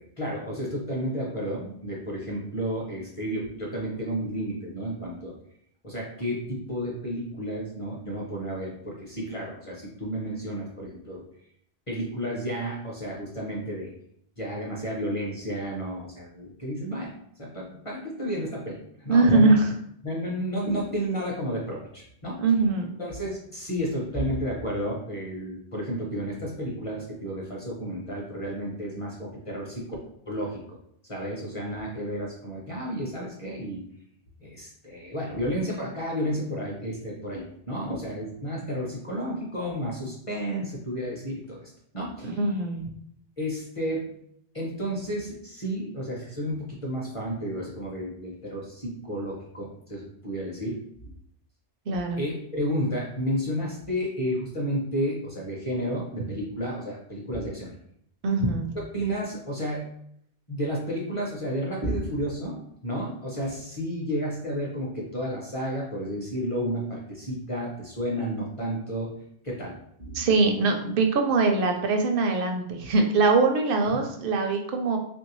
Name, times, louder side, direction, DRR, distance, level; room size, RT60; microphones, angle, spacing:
voice 1, 0.0-5.3 5.8-11.2 11.9-13.9 14.4-19.5 20.0-22.4 23.0-29.9 30.3-30.8 31.0-33.8 34.4-42.5 43.4-44.1 44.5-50.9 52.2-57.7 58.9-59.9 60.5-69.2 69.4-70.2 73.9-74.0, equal, 35° left, -3 dB, 0.6 m, -32 dB
voice 2, 19.1-19.7 22.4-22.9 42.2-42.9 51.9-52.2 58.2-58.7 70.1-75.0, right 3 dB, 60° right, 4 dB, 0.6 m, -22 dB
3.2 x 2.6 x 2.9 m, 0.69 s
omnidirectional pair, 1.2 m